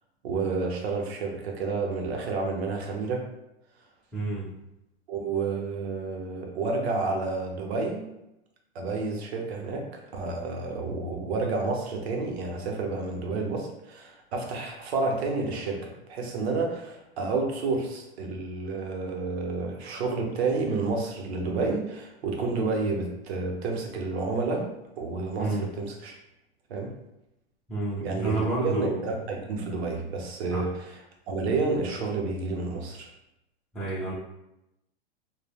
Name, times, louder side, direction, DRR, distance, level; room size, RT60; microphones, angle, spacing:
voice 1, 0.2-3.3 5.1-8.1 8.7-26.1 26.7-26.9 28.0-31.0 31.3-33.1, right 3 dB, 75° right, 1 dB, 0.8 m, -30 dB
voice 2, 4.1-4.5 25.4-25.7 27.7-29.1 30.5-30.6 33.7-34.1, right 2 dB, ahead, -9 dB, 0.7 m, -29 dB
3.2 x 2.1 x 2.3 m, 0.89 s
hypercardioid pair, 130°, 32 cm